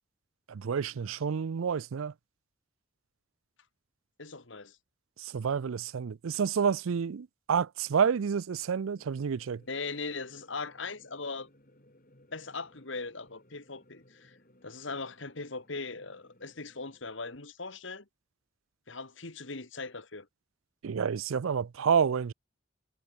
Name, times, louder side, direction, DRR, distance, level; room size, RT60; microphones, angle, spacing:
voice 1, 0.5-2.1 5.2-9.6 20.8-22.3, right 6 dB, 90° right, 0.5 m, -29 dB
voice 2, 4.2-4.8 9.7-11.5 12.3-14.4 14.6-18.1 18.9-20.3, left 3 dB, 70° left, 2.2 m, -39 dB
sound 1, 8.9-17.0, left 1 dB, 45° left, 5.3 m, -61 dB
head